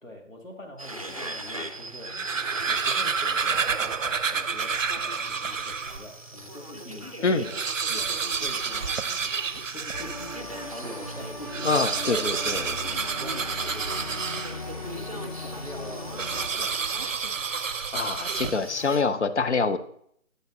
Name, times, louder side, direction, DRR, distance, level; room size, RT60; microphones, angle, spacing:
voice 1, 0.0-2.4 2.7-9.3 9.7-17.1, left 1 dB, 85° left, 2 dB, 2.1 m, -45 dB
sound 1, 0.8-19.0, right 1 dB, 30° right, 0.5 m, -41 dB
sound 2, 1.9-6.1 6.6-6.7 6.9-7.0 7.3-10.5 11.4-14.9 16.2-18.9, right 5 dB, 80° right, 0.6 m, -29 dB
sound 3, 9.9-16.5, left 2 dB, 30° left, 0.7 m, -38 dB
voice 2, 11.6-12.7 17.9-19.8, left 4 dB, 60° left, 11 dB, 0.8 m, -25 dB
10.5 x 7.9 x 2.7 m, 0.67 s
figure-of-eight pair, 150°, 38 cm